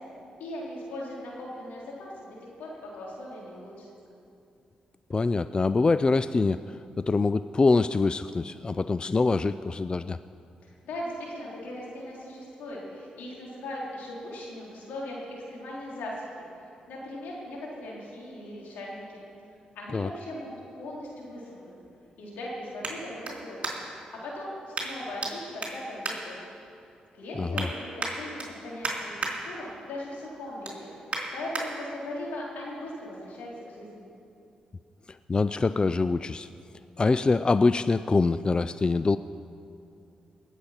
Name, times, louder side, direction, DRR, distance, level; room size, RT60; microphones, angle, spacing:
voice 1, 0.4-3.9 10.8-16.3 16.9-19.2 19.8-21.7 22.2-26.4 27.1-30.9 31.3-34.0, left 1 dB, 80° left, -4 dB, 3.6 m, -39 dB
voice 2, 5.1-10.2 19.9-20.1 27.4-27.7 35.1-36.5 37.0-39.2, left 3 dB, 30° left, 14 dB, 0.3 m, -24 dB
sound 1, 20.8-24.1 24.7-25.3 25.6-26.9 27.3-27.7 28.0-29.3 29.8-30.0 30.4-31.7 32.2-32.3, right 3 dB, 45° right, 3.9 m, -36 dB
19.5 x 8.2 x 5.9 m, 2.6 s
supercardioid pair, 50°, 3 cm